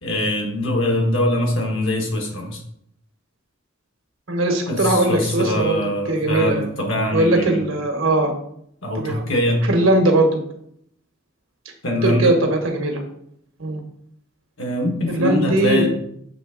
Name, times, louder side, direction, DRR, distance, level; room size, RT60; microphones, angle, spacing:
voice 1, 0.0-2.6 4.7-7.6 8.8-9.6 11.8-12.4 14.6-15.9, left 1 dB, 75° left, 2 dB, 1.5 m, -22 dB
voice 2, 4.3-5.8 6.1-6.6 7.1-8.3 8.9-9.2 9.7-10.4 12.0-13.0 13.6-13.8 15.1-15.9, right 1 dB, 85° right, 4 dB, 1.4 m, -19 dB
7.0 x 3.4 x 5.1 m, 0.70 s
head